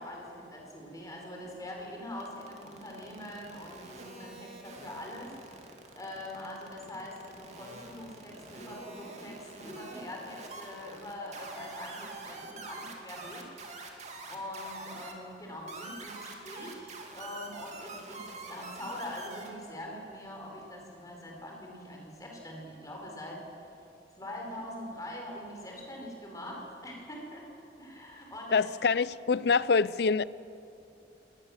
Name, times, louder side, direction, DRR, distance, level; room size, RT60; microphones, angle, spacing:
voice 1, 0.0-5.4 5.9-13.5 14.3-23.4 24.2-27.5 27.8-28.6, left 1 dB, 20° left, 0 dB, 4.5 m, -43 dB
sound 1, 2.2-15.1 15.7-19.5, right 3 dB, 40° right, 2.6 m, -46 dB
voice 2, 28.5-30.2, left 5 dB, 65° left, 19 dB, 0.5 m, -25 dB
22.0 x 19.0 x 7.3 m, 2.8 s
head